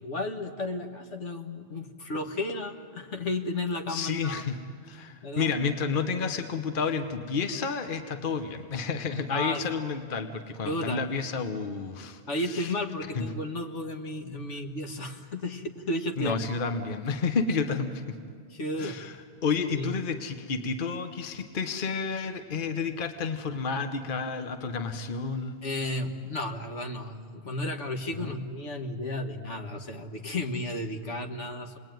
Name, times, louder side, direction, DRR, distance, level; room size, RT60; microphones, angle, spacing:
voice 1, 0.0-4.4 5.2-5.5 9.3-9.7 10.7-11.1 12.3-16.5 18.5-19.0 19.7-19.9 25.6-31.8, left 1 dB, 70° left, 4 dB, 1.9 m, -33 dB
voice 2, 3.9-4.6 4.8-12.2 12.5-12.7 13.2-13.3 16.2-18.2 18.8-19.2 19.4-25.6 28.2-28.3, left 5 dB, 45° left, 7 dB, 1.2 m, -30 dB
28.0 x 21.0 x 9.2 m, 2.2 s
omnidirectional pair, 1.3 m